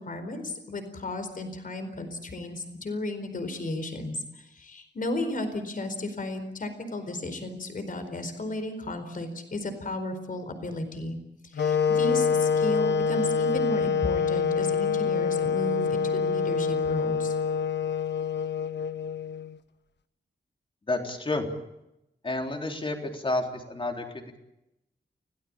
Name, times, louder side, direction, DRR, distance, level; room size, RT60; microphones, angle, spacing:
voice 1, 0.0-11.2 11.5-17.3, left 2 dB, 50° left, 9 dB, 4.4 m, -34 dB
sound 1, 11.6-19.6, left 6 dB, 75° left, 1.4 m, -26 dB
voice 2, 20.9-21.5 22.2-24.4, left 2 dB, 30° left, 4 dB, 3.7 m, -30 dB
29.0 x 18.0 x 8.8 m, 0.88 s
wide cardioid pair, 170°, 18 cm